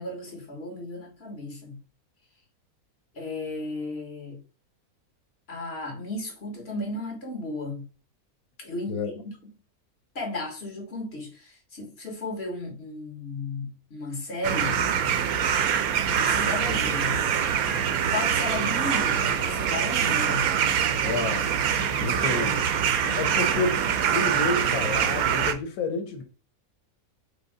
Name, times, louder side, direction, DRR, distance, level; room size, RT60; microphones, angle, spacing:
voice 1, 0.0-1.8 3.1-4.4 5.5-7.9 8.6-9.0 9.4-9.5 10.2-14.8 16.1-17.2 18.1-20.5, left 2 dB, 45° left, 1.7 m, -34 dB
sound 1, 14.4-25.5, right 8 dB, 80° right, 1.0 m, -24 dB
voice 2, 21.0-21.5 22.0-22.6 23.2-26.2, left 3 dB, 90° left, 1.2 m, -29 dB
5.0 x 2.1 x 4.8 m
omnidirectional pair, 1.5 m